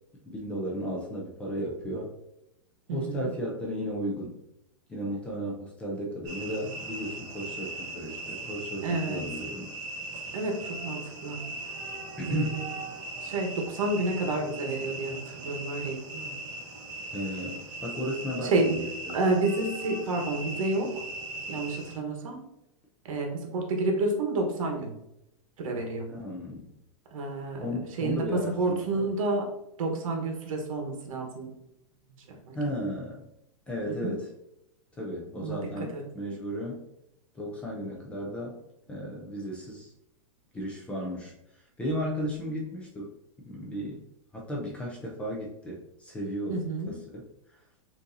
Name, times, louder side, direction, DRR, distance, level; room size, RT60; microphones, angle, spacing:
voice 1, 0.2-2.1 2.9-4.4 4.9-9.7 12.2-12.7 17.1-19.2 26.1-26.7 27.6-29.1 32.5-33.3 33.7-34.3 35.0-36.9 37.3-38.6 38.9-39.9 40.5-41.3 41.8-43.1 43.5-44.1 44.3-47.2, equal, 5° left, -2 dB, 0.4 m, -34 dB
voice 2, 2.9-3.3 8.8-9.2 10.3-11.4 12.3-12.7 13.2-16.4 18.4-18.9 19.1-21.0 21.5-22.4 23.0-24.9 25.6-26.1 27.1-29.5 29.8-31.5 32.3-32.6 33.9-34.1 35.4-35.6 35.9-36.0 46.5-46.9, right 2 dB, 70° right, 2 dB, 1.2 m, -30 dB
sound 1, 6.2-21.9, right 2 dB, 20° right, 0.9 m, -39 dB
6.3 x 2.7 x 2.6 m, 0.85 s
supercardioid pair, 165°, 18 cm